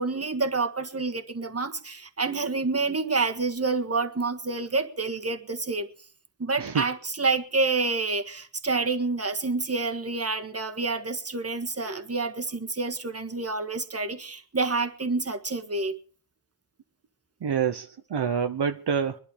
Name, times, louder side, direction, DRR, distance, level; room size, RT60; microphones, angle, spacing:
voice 1, 0.0-5.9 6.4-16.0, right 3 dB, 35° right, 1.7 m, -28 dB
voice 2, 17.4-19.2, right 7 dB, 70° right, 0.8 m, -27 dB
22.0 x 11.5 x 5.0 m
wide cardioid pair, 105°, 42 cm